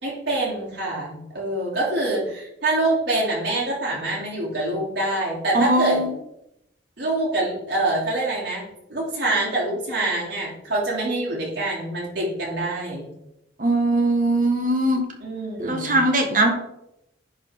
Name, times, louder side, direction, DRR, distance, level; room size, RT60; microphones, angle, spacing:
voice 1, 0.0-6.0 7.0-13.1 15.2-16.0, right 2 dB, 65° right, -7 dB, 3.3 m, -25 dB
voice 2, 5.5-6.1 13.6-15.0 15.6-16.5, right 1 dB, 45° right, 3 dB, 1.4 m, -20 dB
10.5 x 4.7 x 3.7 m, 0.82 s
head